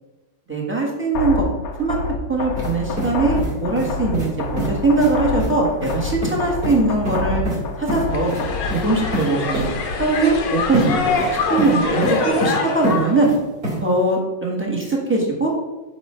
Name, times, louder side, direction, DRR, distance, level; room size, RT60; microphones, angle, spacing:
voice 1, 0.5-1.4 1.8-2.0 2.3-7.4 7.8-8.3 8.7-9.7 10.0-11.0 11.5-13.3 13.8-15.5, right 3 dB, 5° right, -3 dB, 1.3 m, -20 dB
sound 1, 1.1-9.1, left 4 dB, 65° left, 1.0 m, -27 dB
sound 2, 2.6-2.7 3.0-3.9 4.1-4.3 4.6-4.7 5.0-5.1 5.4-5.5 5.8-5.9 6.2-6.3 6.6-6.8 7.1-7.6 7.9-8.0 8.3-8.4 8.7-8.8 9.1-9.2 9.5-9.6 10.7-10.9 11.2-11.7 12.0-12.5 12.8-13.4 13.6-13.8, equal, 35° right, 2.9 m, -26 dB
sound 3, 8.1-13.2, left 4 dB, 90° left, 1.6 m, -24 dB
8.5 x 2.9 x 5.6 m, 1.1 s
omnidirectional pair, 1.9 m